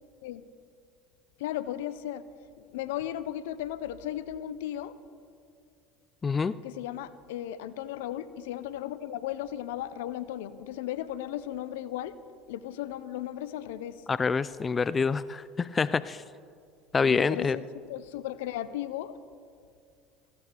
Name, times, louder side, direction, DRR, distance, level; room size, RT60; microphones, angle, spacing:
voice 1, 1.4-2.2 2.7-5.0 6.6-12.2 12.5-14.0 17.0-19.1, left 12 dB, 75° left, 15 dB, 0.6 m, -36 dB
voice 2, 6.2-6.5 14.1-16.2 16.9-17.6, left 5 dB, 30° left, 17 dB, 0.4 m, -26 dB
18.5 x 15.5 x 3.4 m, 2.3 s
hypercardioid pair, 70°, 0 cm